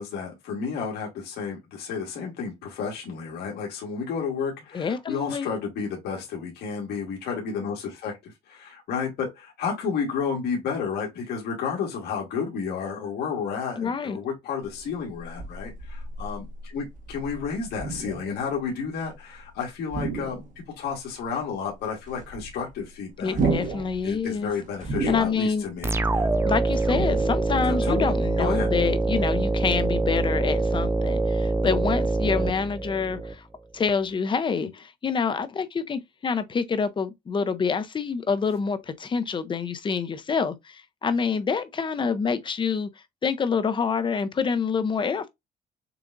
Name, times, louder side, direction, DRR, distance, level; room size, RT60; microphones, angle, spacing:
voice 1, 0.0-20.4 20.8-23.4 24.0-26.3 27.6-28.1 28.4-28.7, left 6 dB, 70° left, 2.0 m, -31 dB
voice 2, 4.7-5.5 13.8-14.2 23.2-24.5 25.1-25.6 26.5-33.5 33.7-42.9 43.2-45.3, left 5 dB, 30° left, 0.8 m, -27 dB
sound 1, 14.7-19.5 19.8-21.1 21.4-21.5 21.7-27.5, right 3 dB, 50° right, 1.2 m, -33 dB
sound 2, 25.8-33.3, right 2 dB, 15° right, 0.4 m, -24 dB
6.9 x 2.3 x 2.6 m
cardioid pair, 110°, 17 cm